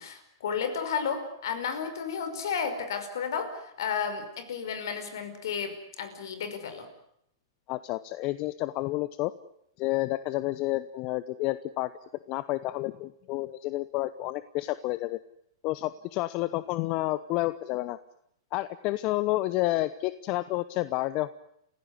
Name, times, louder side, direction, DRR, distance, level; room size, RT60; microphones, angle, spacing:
voice 1, 0.0-6.9, left 6 dB, 70° left, 10 dB, 5.4 m, -32 dB
voice 2, 7.7-9.3 9.8-11.9 12.3-15.2 15.6-18.0 18.5-21.3, left 18 dB, 40° left, 15 dB, 0.9 m, -30 dB
29.5 x 16.0 x 9.7 m, 0.75 s
hypercardioid pair, 115°, 2 cm